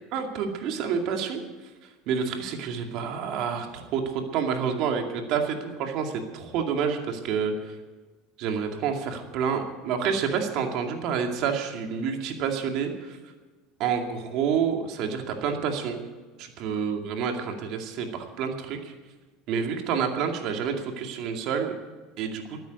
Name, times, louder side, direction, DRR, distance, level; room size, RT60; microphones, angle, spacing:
voice 1, 0.1-1.4 2.1-7.8 8.4-13.2 13.8-16.0 16.4-18.9 19.5-21.7 22.2-22.6, right 6 dB, 60° right, 4 dB, 2.3 m, -28 dB
13.0 x 9.3 x 8.4 m, 1.3 s
supercardioid pair, 110°, 0 cm